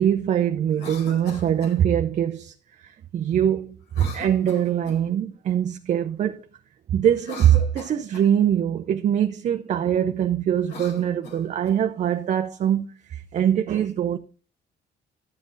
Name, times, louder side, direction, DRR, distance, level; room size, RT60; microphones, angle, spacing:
voice 1, 0.0-6.4 6.9-14.2, right 9 dB, 40° right, 0.6 m, -23 dB
Cough, 0.7-1.8 3.9-5.1 7.1-8.3 10.5-11.8, left 3 dB, 80° left, 4.3 m, -40 dB
12.5 x 7.7 x 4.0 m
cardioid pair, 170°, 18 cm